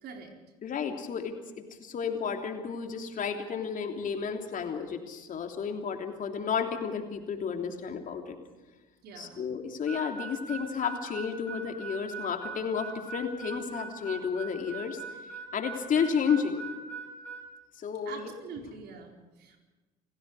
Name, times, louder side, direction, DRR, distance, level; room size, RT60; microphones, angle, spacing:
voice 1, 0.0-0.3 9.0-9.5 18.0-19.6, right 5 dB, 55° right, 2 dB, 4.5 m, -44 dB
voice 2, 0.6-1.3 1.8-8.4 9.2-15.0 15.5-16.6 17.8-18.3, left 6 dB, 45° left, 4 dB, 3.2 m, -32 dB
Harmonica, 9.9-17.5, right 5 dB, 10° left, 7.1 m, -41 dB
28.5 x 18.5 x 4.9 m, 1.2 s
hypercardioid pair, 60°, 19 cm